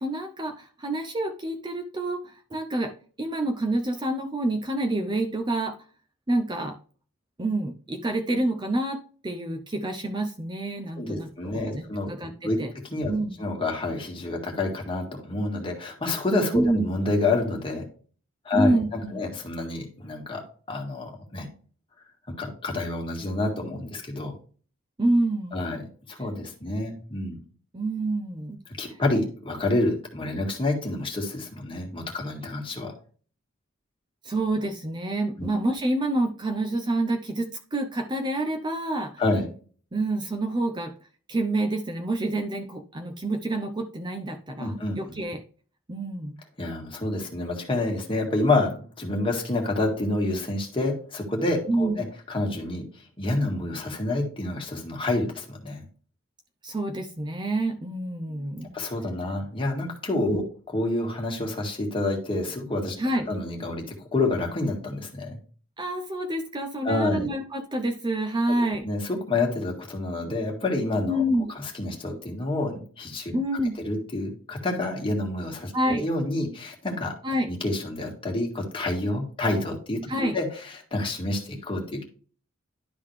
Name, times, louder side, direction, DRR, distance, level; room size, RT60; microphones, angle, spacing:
voice 1, 0.0-2.9 3.2-5.7 6.3-6.8 7.4-9.0 9.2-11.8 12.1-12.7 13.1-13.3 16.5-16.9 18.5-19.2 25.0-25.6 27.7-28.6 34.2-39.1 39.9-40.9 41.3-45.4 45.9-46.3 51.7-52.0 56.6-58.8 60.3-60.4 63.0-63.3 65.8-68.9 71.1-71.5 73.3-73.7 75.7-76.1 77.2-77.5 80.1-80.4, right 1 dB, 20° right, 5 dB, 0.6 m, -27 dB
voice 2, 11.0-12.1 12.4-12.6 12.8-13.1 13.4-17.8 18.4-20.4 20.7-21.5 22.3-24.3 25.5-25.8 26.1-27.4 28.8-32.9 35.4-35.5 39.2-39.5 44.6-45.0 46.6-52.8 53.2-55.8 58.7-62.9 63.3-65.4 66.8-67.3 68.8-71.2 71.5-73.3 73.8-77.1 77.5-80.0 80.3-80.5 80.7-82.0, left 2 dB, 25° left, 0 dB, 1.8 m, -28 dB
11.5 x 3.9 x 3.2 m, 0.41 s
head